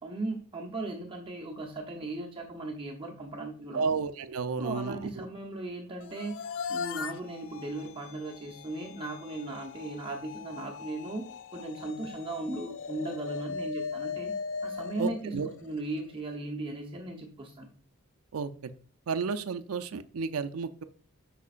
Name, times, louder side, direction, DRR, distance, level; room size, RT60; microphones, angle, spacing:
voice 1, 0.0-3.9 4.6-11.3 11.5-14.3 14.6-17.7, right 2 dB, 25° right, 0 dB, 0.8 m, -37 dB
voice 2, 3.7-5.3 15.0-15.5 18.3-18.7 19.1-20.8, right 5 dB, 80° right, 10 dB, 0.5 m, -32 dB
sound 1, 6.0-16.2, left 5 dB, 60° left, 0.3 m, -39 dB
8.3 x 5.8 x 2.5 m, 0.41 s
head